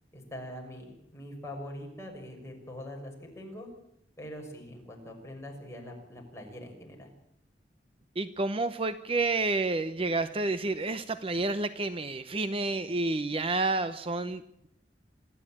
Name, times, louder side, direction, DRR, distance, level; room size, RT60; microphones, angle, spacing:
voice 1, 0.1-3.7 4.2-7.1, left 1 dB, 15° left, 0 dB, 6.2 m, -43 dB
voice 2, 8.2-14.7, right 3 dB, 30° right, 11 dB, 0.8 m, -30 dB
26.0 x 13.5 x 8.8 m, 0.76 s
head